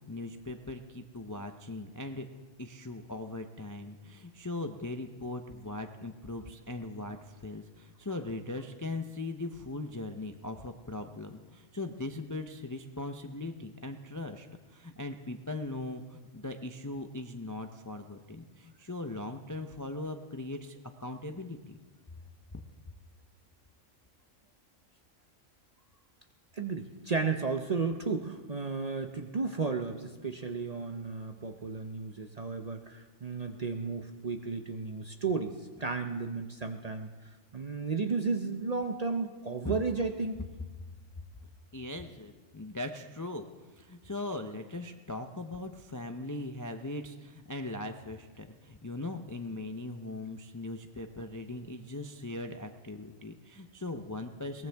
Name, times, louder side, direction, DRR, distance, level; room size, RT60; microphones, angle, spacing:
voice 1, 0.1-2.3 2.6-21.8 22.5-22.6 39.6-39.7 41.7-43.5 43.7-54.7, left 2 dB, 25° left, 6 dB, 0.4 m, -39 dB
voice 2, 26.5-37.1 37.5-40.4, right 4 dB, 40° right, 5 dB, 0.7 m, -33 dB
22.0 x 18.5 x 3.5 m, 1.3 s
omnidirectional pair, 1.4 m